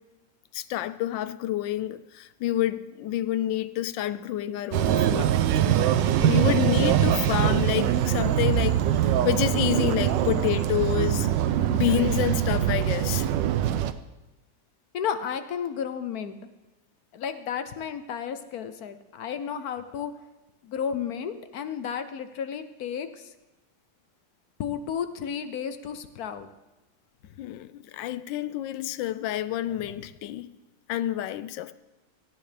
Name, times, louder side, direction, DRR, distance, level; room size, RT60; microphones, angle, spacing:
voice 1, 0.5-5.4 6.2-11.3 11.7-13.3 27.4-30.5 30.9-31.7, left 13 dB, 80° left, 1.3 m, -28 dB
sound 1, 4.7-13.9, right 11 dB, 75° right, 1.3 m, -23 dB
voice 2, 14.9-16.5 17.1-20.1 20.6-23.1 24.6-26.5, left 7 dB, 65° left, 1.1 m, -32 dB
17.5 x 13.5 x 3.4 m
omnidirectional pair, 2.0 m